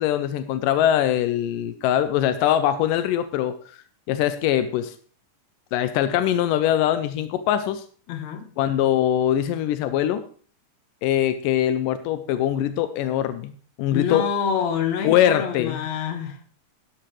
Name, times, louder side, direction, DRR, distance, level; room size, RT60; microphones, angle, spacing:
voice 1, 0.0-3.8 4.1-4.9 5.7-7.8 8.6-10.2 11.0-13.5 13.8-14.3 15.0-15.8, left 11 dB, 90° left, 11 dB, 2.3 m, -22 dB
voice 2, 8.1-8.5 13.9-16.4, left 7 dB, 65° left, 7 dB, 2.4 m, -27 dB
12.0 x 11.5 x 3.2 m, 0.43 s
omnidirectional pair, 3.8 m